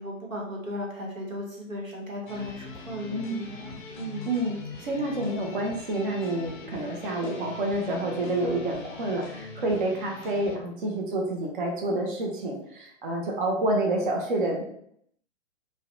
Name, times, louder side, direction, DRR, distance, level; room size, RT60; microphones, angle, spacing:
voice 1, 0.0-4.3, left 1 dB, 80° right, -2 dB, 1.0 m, -36 dB
sound 1, 2.3-10.6, left 3 dB, 40° left, 0.4 m, -42 dB
voice 2, 3.1-3.5 4.3-14.6, right 1 dB, 40° right, 0 dB, 0.5 m, -28 dB
2.5 x 2.0 x 2.5 m, 0.70 s
figure-of-eight pair, 120°, 39 cm